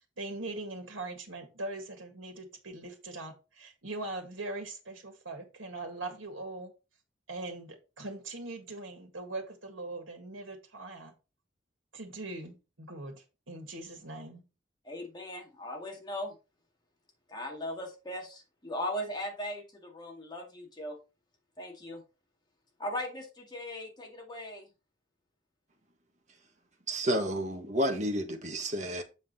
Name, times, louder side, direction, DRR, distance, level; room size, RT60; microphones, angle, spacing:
voice 1, 0.2-6.7 7.3-11.1 11.9-14.4, right 2 dB, 85° right, 1.8 m, -41 dB
voice 2, 14.8-16.4 17.3-21.0 21.6-22.0 22.8-24.7, left 1 dB, 20° left, 2.1 m, -38 dB
voice 3, 26.9-29.0, equal, 40° right, 1.4 m, -30 dB
7.6 x 4.9 x 4.2 m
head